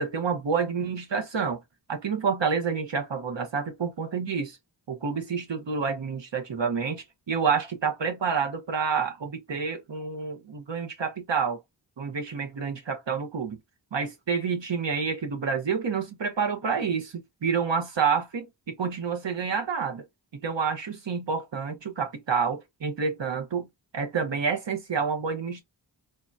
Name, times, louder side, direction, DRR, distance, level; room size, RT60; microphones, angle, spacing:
voice 1, 0.0-1.6 1.9-4.6 4.9-11.6 12.0-13.6 13.9-20.0 20.3-23.7 23.9-25.6, right 5 dB, 75° right, 1.0 m, -28 dB
3.7 x 2.1 x 2.6 m
cardioid pair, 45°, 44 cm